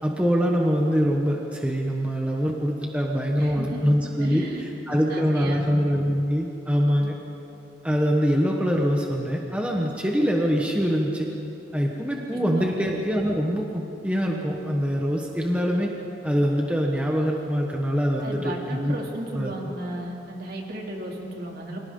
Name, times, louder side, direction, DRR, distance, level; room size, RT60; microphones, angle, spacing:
voice 1, 0.0-7.2 7.8-11.3 11.7-15.9 16.2-18.9 19.3-19.5, equal, 5° right, -1 dB, 1.3 m, -24 dB
voice 2, 3.4-3.9 4.2-5.6 7.0-7.1 12.3-12.8 18.2-21.8, right 1 dB, 55° right, -1 dB, 3.0 m, -35 dB
29.5 x 24.0 x 3.9 m, 2.9 s
head